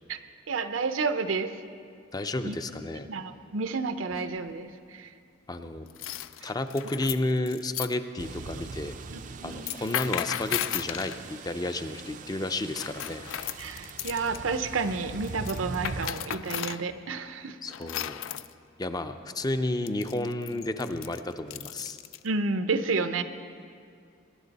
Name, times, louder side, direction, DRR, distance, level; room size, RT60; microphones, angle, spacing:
voice 1, 0.5-1.5 2.4-5.1 6.4-6.5 9.1-9.7 13.6-17.6 22.2-23.2, right 4 dB, 75° right, 9 dB, 0.7 m, -31 dB
voice 2, 2.1-3.1 5.5-5.9 6.4-8.9 9.4-13.2 17.6-18.2 18.8-22.0, left 2 dB, 20° left, 9 dB, 0.5 m, -32 dB
sound 1, 4.1-4.5 5.9-7.9 9.5-11.2 12.8-14.4 15.2-16.8 17.7-18.5 19.9-22.2, left 11 dB, 75° left, 0.4 m, -35 dB
sound 2, 8.2-16.1, right 4 dB, 40° right, 0.4 m, -41 dB
21.0 x 10.5 x 4.1 m, 2.3 s
head